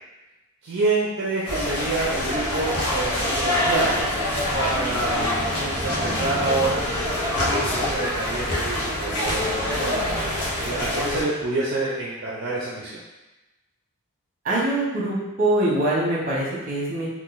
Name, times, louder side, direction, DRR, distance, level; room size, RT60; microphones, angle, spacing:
voice 1, 0.6-4.0 4.5-6.8 7.2-13.0, right 2 dB, 55° right, -5 dB, 0.5 m, -28 dB
sound 1, 1.4-11.2, left 1 dB, 75° left, 0.9 m, -25 dB
voice 2, 14.4-17.1, right 1 dB, 40° right, -4 dB, 0.9 m, -23 dB
3.6 x 2.5 x 2.5 m, 1.0 s
head